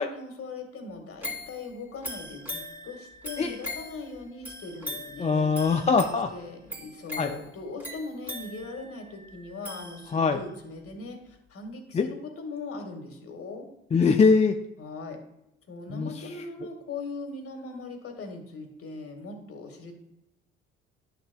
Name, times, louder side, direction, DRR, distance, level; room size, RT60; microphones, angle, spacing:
voice 1, 0.0-5.5 6.1-13.7 14.8-15.2 15.7-19.9, left 3 dB, 45° left, 4 dB, 1.8 m, -40 dB
sound 1, 1.2-10.5 10.9-11.0, left 1 dB, 5° right, 2.6 m, -41 dB
voice 2, 5.2-6.3 7.2-7.3 10.1-10.4 11.9-12.1 13.9-14.6 15.9-16.1, left 4 dB, 20° left, 5 dB, 0.5 m, -22 dB
10.5 x 6.5 x 2.2 m, 0.84 s
hypercardioid pair, 55°, 33 cm